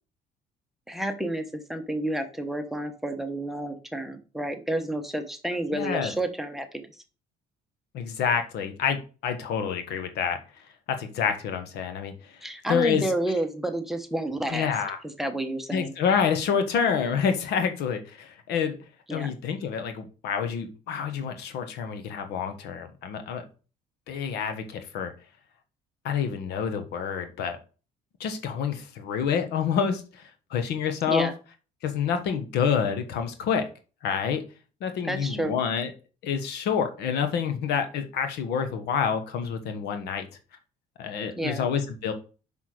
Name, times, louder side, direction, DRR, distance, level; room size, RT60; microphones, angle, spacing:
voice 1, 0.9-6.9 12.4-14.7 15.2-15.9 19.1-19.3 31.1-31.3 35.0-35.6 41.4-41.7, right 1 dB, ahead, 7 dB, 1.1 m, -30 dB
voice 2, 5.7-6.1 7.9-10.4 10.9-12.4 12.7-13.1 14.5-15.0 15.7-18.8 19.1-23.4 24.1-25.1 26.0-27.6 28.2-30.2 30.5-31.3 31.8-33.6 34.0-34.4 34.8-35.9 36.2-40.3 41.0-42.1, left 7 dB, 80° left, 7 dB, 1.3 m, -28 dB
6.1 x 5.7 x 4.9 m, 0.36 s
cardioid pair, 110°, 17 cm